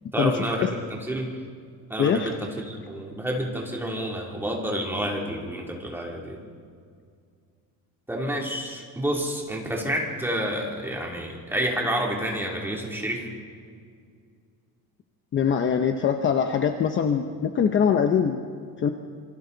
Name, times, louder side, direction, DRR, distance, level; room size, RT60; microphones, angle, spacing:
voice 1, 0.1-1.4 1.9-6.4 8.1-13.3, equal, 5° right, -1 dB, 2.9 m, -29 dB
voice 2, 2.0-2.3 15.3-18.4 18.8-18.9, left 7 dB, 30° left, 6 dB, 0.9 m, -23 dB
27.0 x 24.0 x 4.0 m, 2.2 s
cardioid pair, 170°, 38 cm